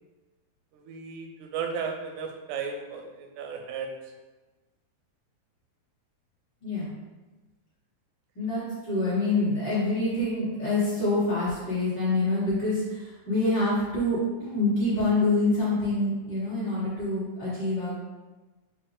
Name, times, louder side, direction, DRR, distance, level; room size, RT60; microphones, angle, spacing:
voice 1, 0.7-3.9, right 6 dB, 85° right, 4 dB, 2.0 m, -35 dB
voice 2, 8.4-18.0, left 2 dB, 45° left, -11 dB, 1.8 m, -26 dB
5.1 x 2.5 x 3.7 m, 1.2 s
omnidirectional pair, 3.5 m